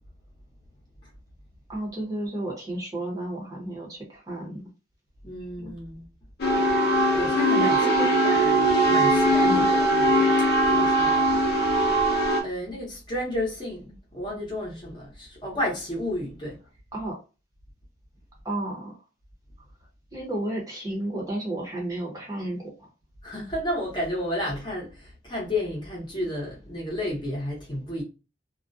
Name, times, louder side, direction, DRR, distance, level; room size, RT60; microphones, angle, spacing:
voice 1, 1.7-4.6 7.5-8.3 9.4-9.7 16.9-17.2 18.4-19.0 20.1-22.9, right 1 dB, 20° right, 0.8 m, -32 dB
voice 2, 5.2-6.1 7.1-10.2 10.7-11.5 12.4-16.6 23.2-28.0, left 1 dB, 25° left, 0.8 m, -32 dB
sound 1, 6.4-12.4, right 1 dB, 60° left, 0.6 m, -21 dB
2.3 x 2.1 x 2.5 m
head